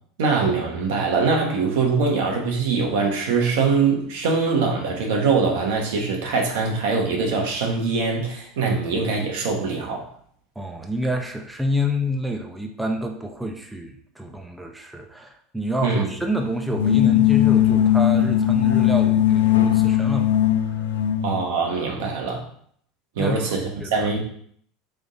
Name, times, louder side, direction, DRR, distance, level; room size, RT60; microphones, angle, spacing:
voice 1, 0.2-10.1 15.8-16.1 21.2-22.4 23.2-24.2, right 4 dB, 75° right, 0 dB, 1.1 m, -23 dB
voice 2, 10.6-20.4 20.7-20.8 23.2-23.4 23.8-24.2, left 1 dB, 5° right, 2 dB, 0.7 m, -28 dB
sound 1, 16.7-21.4, left 11 dB, 85° left, 0.4 m, -18 dB
3.6 x 3.5 x 3.9 m, 0.62 s
hypercardioid pair, 85°, 0 cm